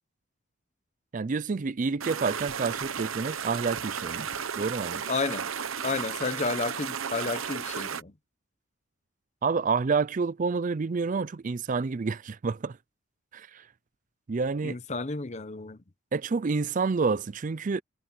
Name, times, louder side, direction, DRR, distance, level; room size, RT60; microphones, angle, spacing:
voice 1, 1.1-4.3 4.6-5.0 9.4-12.8 13.3-13.7 14.3-14.8 16.1-17.8, right 4 dB, 40° right, 0.4 m, -28 dB
sound 1, 2.0-8.0, right 7 dB, 75° right, 0.9 m, -34 dB
voice 2, 5.1-5.5 5.8-8.1 14.6-15.8, left 3 dB, 35° left, 0.8 m, -31 dB
head